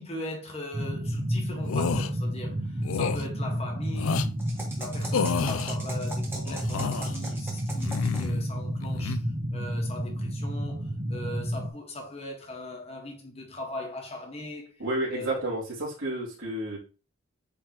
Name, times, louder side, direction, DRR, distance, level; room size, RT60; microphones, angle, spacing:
voice 1, 0.0-4.4 4.8-9.2 9.5-14.8 15.1-15.5, left 1 dB, 30° left, 1.6 m, -39 dB
sound 1, 0.7-11.7, equal, 25° right, 0.8 m, -31 dB
sound 2, 1.6-2.1 2.8-3.2 3.9-4.3 5.1-5.8 6.5-7.2 7.8-8.4 8.8-9.2, left 5 dB, 80° left, 0.4 m, -29 dB
sound 3, 4.4-8.4, right 1 dB, 10° right, 1.5 m, -41 dB
voice 2, 14.8-15.6 16.0-16.8, right 1 dB, 85° right, 2.9 m, -30 dB
8.3 x 3.9 x 3.0 m
head